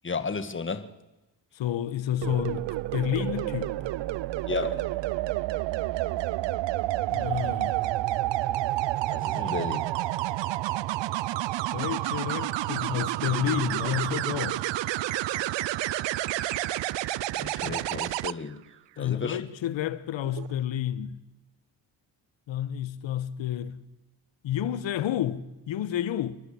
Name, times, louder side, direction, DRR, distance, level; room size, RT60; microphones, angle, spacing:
voice 1, 0.0-0.9 4.5-5.0 9.1-9.8 17.4-18.6 19.0-19.4, left 4 dB, 25° left, 1.6 m, -33 dB
voice 2, 1.5-2.7 2.9-3.8 7.1-7.8 9.3-9.5 11.7-14.6 17.6-17.8 19.0-21.2 22.5-23.8 24.4-26.3, left 10 dB, 80° left, 1.2 m, -30 dB
sound 1, 2.2-18.3 20.2-20.5, right 16 dB, 75° right, 0.6 m, -29 dB
27.5 x 11.0 x 8.5 m
cardioid pair, 70°, 45 cm